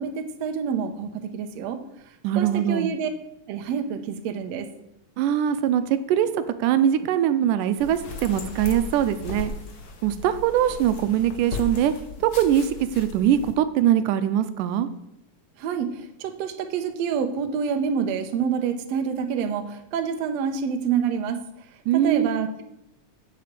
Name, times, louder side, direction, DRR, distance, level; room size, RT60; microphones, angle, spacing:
voice 1, 0.0-1.8 2.4-3.1 3.5-4.7 15.6-21.4 21.9-22.6, right 7 dB, 65° right, 6 dB, 2.0 m, -27 dB
voice 2, 2.2-2.9 5.2-9.5 10.0-11.9 12.2-14.9 21.9-22.3, right 10 dB, 90° right, 11 dB, 2.3 m, -22 dB
sound 1, 7.8-13.5, left 3 dB, 60° left, 1.0 m, -36 dB
8.5 x 7.9 x 7.5 m, 0.83 s
omnidirectional pair, 3.6 m